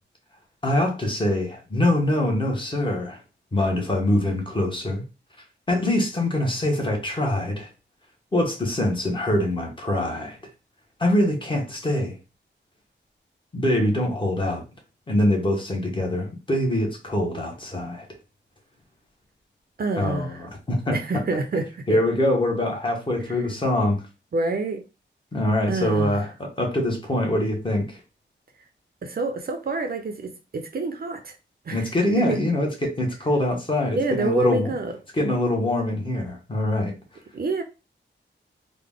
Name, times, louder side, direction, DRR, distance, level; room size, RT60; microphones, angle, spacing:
voice 1, 0.6-3.2 3.5-5.0 5.7-7.7 8.3-10.4 11.0-12.2 13.5-14.6 15.1-18.0 20.0-21.0 21.5-21.6 21.9-24.0 25.3-28.0 31.7-34.7 35.1-36.9, left 1 dB, 25° left, 1.0 m, -24 dB
voice 2, 19.8-20.4 20.9-22.0 23.3-23.4 24.3-24.8 25.7-26.3 29.0-31.3 31.7-31.9 32.2-32.4 33.9-34.9 37.3-37.6, right 3 dB, 50° right, 0.6 m, -27 dB
3.8 x 2.1 x 3.5 m
wide cardioid pair, 170°, 20 cm